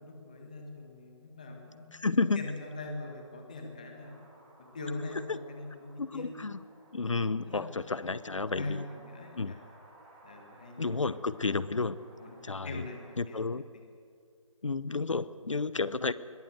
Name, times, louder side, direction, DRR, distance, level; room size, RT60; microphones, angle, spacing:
voice 1, 0.0-1.9 2.3-4.2 4.6-6.3 7.4-7.6 8.5-9.6 10.2-10.9 12.1-13.4, left 2 dB, 15° left, 2 dB, 1.6 m, -42 dB
voice 2, 1.9-2.5 5.3-5.4 6.0-6.6 6.9-8.8 9.3-9.5 10.8-12.0 12.4-12.8 13.2-13.6 14.6-16.1, left 3 dB, 65° left, 16 dB, 0.8 m, -31 dB
sound 1, 3.9-13.1, right 1 dB, 15° right, 3.6 m, -58 dB
21.5 x 17.5 x 7.8 m, 2.3 s
figure-of-eight pair, 180°, 17 cm